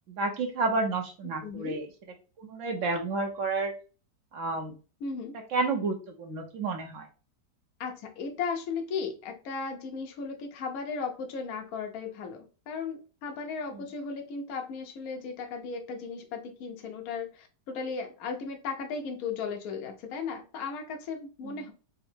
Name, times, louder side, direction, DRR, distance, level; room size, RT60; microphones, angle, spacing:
voice 1, 0.1-1.9 2.4-3.7 4.3-4.7 5.5-7.1 21.4-21.6, right 3 dB, 60° right, 4 dB, 1.0 m, -30 dB
voice 2, 1.4-1.8 5.0-5.3 7.8-21.7, left 5 dB, 65° left, 3 dB, 1.1 m, -36 dB
3.8 x 2.1 x 4.3 m, 0.34 s
omnidirectional pair, 1.7 m